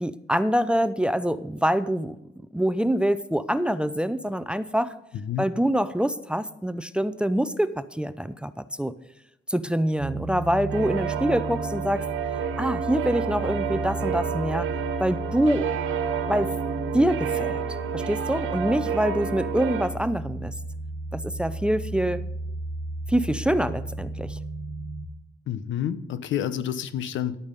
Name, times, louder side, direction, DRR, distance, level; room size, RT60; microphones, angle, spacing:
voice 1, 0.0-2.2 2.5-4.9 5.4-8.5 8.8-8.9 9.5-12.1 12.6-14.7 15.0-15.7 16.3-16.5 16.9-17.6 17.9-20.5 21.1-22.2 23.1-24.4, equal, 5° right, 14 dB, 0.5 m, -25 dB
voice 2, 5.1-5.5 25.5-27.4, left 10 dB, 75° left, 14 dB, 0.8 m, -29 dB
sound 1, 10.0-25.1, right 2 dB, 50° right, 1.2 m, -34 dB
sound 2, 10.7-19.9, right 7 dB, 80° right, 1.3 m, -30 dB
11.0 x 8.7 x 5.3 m, 0.85 s
cardioid pair, 90°, 20 cm